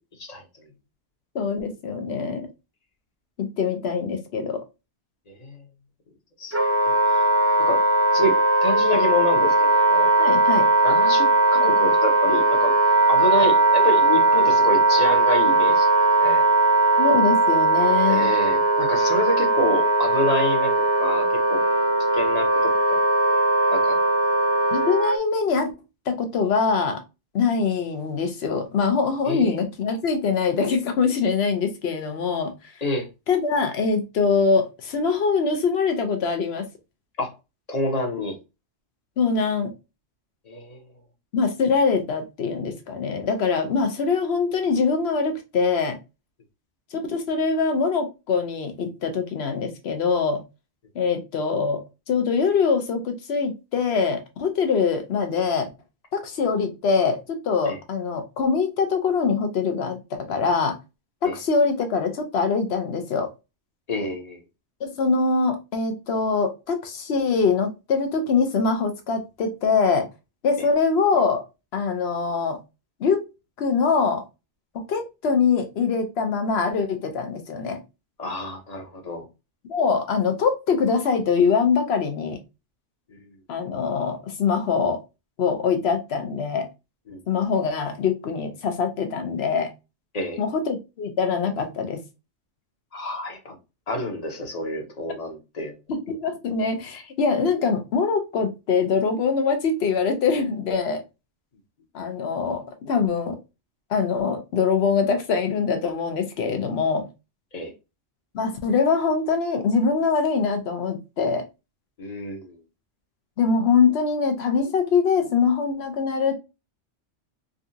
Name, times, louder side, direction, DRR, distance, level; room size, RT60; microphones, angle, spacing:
voice 1, 0.2-0.7 5.3-5.6 6.4-6.5 6.8-7.2 7.6-7.8 8.1-10.1 10.8-12.7 13.1-15.9 16.2-16.4 18.1-21.6 22.1-23.0 23.3-23.4 23.7-24.0 29.2-29.6 32.8-33.1 37.2-37.3 37.7-38.4 40.4-40.8 57.6-57.8 61.2-61.4 63.9-64.4 78.2-79.2 83.1-83.2 87.1-87.2 90.1-90.4 92.9-93.6 93.9-95.7 107.5-107.7 112.0-112.6, left 1 dB, 35° left, 0.9 m, -28 dB
voice 2, 1.3-2.5 3.4-4.6 10.2-10.7 17.0-18.3 24.7-25.7 26.1-27.0 27.3-32.5 33.3-36.7 39.2-39.7 41.3-46.0 46.9-50.4 50.9-55.7 56.1-60.0 60.3-60.8 61.2-63.3 64.8-70.1 70.4-71.4 71.7-72.6 73.0-73.2 73.6-74.3 74.9-77.8 79.7-82.4 83.5-85.0 85.4-86.7 87.3-89.7 90.4-92.0 95.9-101.0 101.9-103.4 103.9-107.1 108.3-111.4 113.4-116.3, left 5 dB, 65° left, 0.9 m, -23 dB
Wind instrument woodwind instrument, 6.5-25.2, right 2 dB, 20° right, 0.4 m, -19 dB
3.8 x 2.3 x 2.7 m
omnidirectional pair, 1.2 m